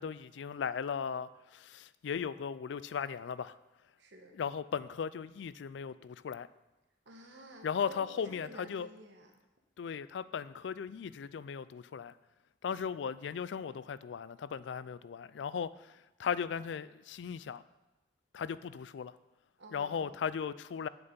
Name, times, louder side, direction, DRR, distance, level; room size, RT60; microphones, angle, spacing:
voice 1, 0.0-3.6 4.4-6.5 7.6-8.9 9.8-12.1 12.6-17.6 18.3-19.2 19.7-20.9, left 7 dB, 75° left, 17 dB, 0.3 m, -37 dB
voice 2, 4.0-4.4 7.0-9.3 19.6-20.2, right 1 dB, 75° right, 3 dB, 1.3 m, -52 dB
8.0 x 6.7 x 5.3 m, 1.1 s
head